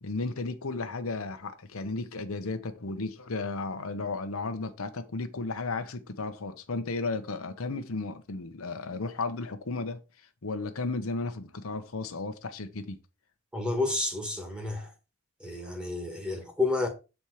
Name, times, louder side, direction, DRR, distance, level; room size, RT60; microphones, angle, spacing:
voice 1, 0.0-10.0 10.4-13.0, left 3 dB, 75° left, 0.9 m, -34 dB
voice 2, 13.5-14.9 15.4-16.9, left 3 dB, 5° right, 1.6 m, -30 dB
7.2 x 4.4 x 4.8 m
head